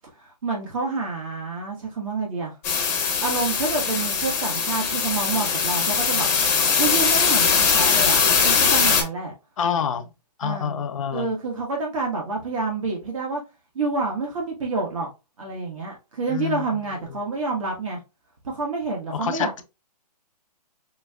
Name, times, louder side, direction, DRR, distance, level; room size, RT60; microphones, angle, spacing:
voice 1, 0.2-2.5 3.2-6.3 6.7-9.3 10.4-10.8 11.1-13.4 13.7-15.1 15.4-18.0 18.4-19.6, right 3 dB, 50° right, 1.3 m, -28 dB
sound 1, 2.6-9.0, left 6 dB, 15° left, 0.8 m, -21 dB
voice 2, 9.6-10.1 10.4-11.3 16.3-16.6 17.1-17.2 19.1-19.6, left 7 dB, 50° left, 0.6 m, -27 dB
5.4 x 2.8 x 2.3 m
hypercardioid pair, 160°, 21 cm